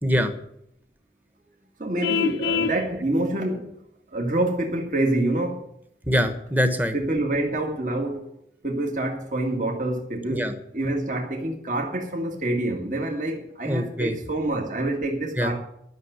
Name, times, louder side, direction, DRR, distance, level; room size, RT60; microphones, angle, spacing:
voice 1, 0.0-0.3 6.1-6.9 10.3-10.5 13.6-14.2 15.4-15.5, equal, 10° right, 1.3 m, -23 dB
voice 2, 1.8-3.8 4.1-5.7 6.9-8.3 8.6-15.6, right 1 dB, 45° right, 2.0 m, -26 dB
Vehicle horn car horn honking, 2.0-2.8, left 6 dB, 80° left, 0.4 m, -25 dB
12.0 x 6.7 x 9.5 m
head